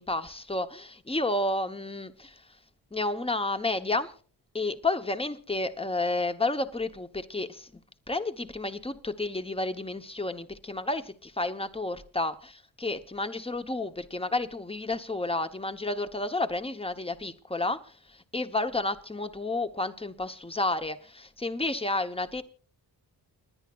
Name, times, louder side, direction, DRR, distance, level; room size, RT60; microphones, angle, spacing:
voice 1, 0.0-2.6 2.9-4.1 4.5-7.8 8.1-22.4, left 2 dB, 15° left, 1.1 m, -31 dB
29.5 x 10.5 x 2.5 m
cardioid pair, 70°, 41 cm